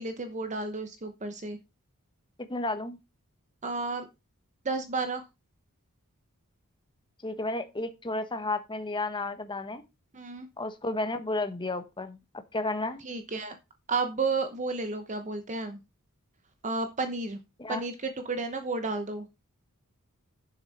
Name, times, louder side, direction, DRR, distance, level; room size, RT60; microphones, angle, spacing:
voice 1, 0.0-1.6 3.6-4.1 4.6-5.2 10.1-10.5 13.0-13.6 13.9-15.8 16.6-17.4 17.7-19.3, right 3 dB, 35° right, 1.0 m, -32 dB
voice 2, 2.5-3.0 7.2-9.8 10.6-12.2 12.5-13.0 17.6-17.8, left 2 dB, 20° left, 1.1 m, -32 dB
9.9 x 7.2 x 4.2 m
head